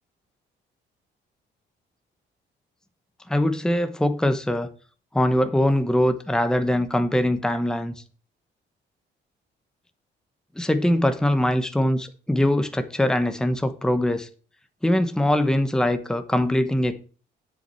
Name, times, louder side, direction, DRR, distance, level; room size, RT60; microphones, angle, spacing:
voice 1, 3.3-4.7 5.1-8.0 10.6-14.3 14.8-17.0, left 1 dB, 5° left, 1.0 m, -22 dB
8.3 x 7.8 x 4.4 m
cardioid pair, 90°, 20 cm